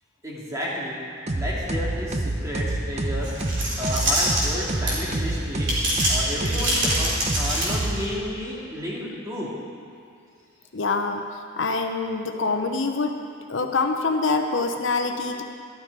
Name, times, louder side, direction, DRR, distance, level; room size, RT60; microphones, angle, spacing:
voice 1, 0.2-1.0 1.3-3.3 3.8-5.7 6.1-9.5, equal, 15° right, -6 dB, 2.4 m, -32 dB
sound 1, 1.3-8.4, right 1 dB, 35° right, 0.7 m, -28 dB
sound 2, 3.2-5.2 5.6-8.0, right 1 dB, 60° right, 3.3 m, -25 dB
voice 2, 10.7-11.3 11.6-13.2 13.5-15.4, left 3 dB, 65° left, 5 dB, 0.7 m, -25 dB
12.5 x 12.5 x 4.7 m, 2.5 s
head